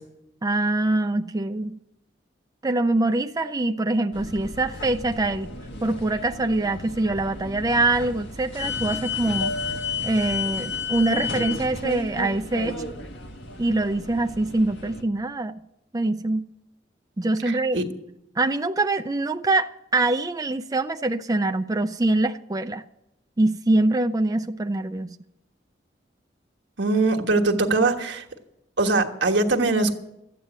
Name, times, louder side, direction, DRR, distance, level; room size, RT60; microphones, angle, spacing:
voice 1, 0.4-1.8 2.6-5.5 5.8-12.8 13.6-15.6 15.9-16.5 17.2-17.8 18.4-22.8 23.4-25.1, right 2 dB, 20° right, 0.4 m, -24 dB
sound 1, 4.1-15.0, left 4 dB, 75° left, 1.4 m, -32 dB
voice 2, 17.5-17.8 26.8-28.2 28.8-29.9, right 3 dB, 75° right, 1.3 m, -22 dB
13.0 x 9.0 x 8.0 m
head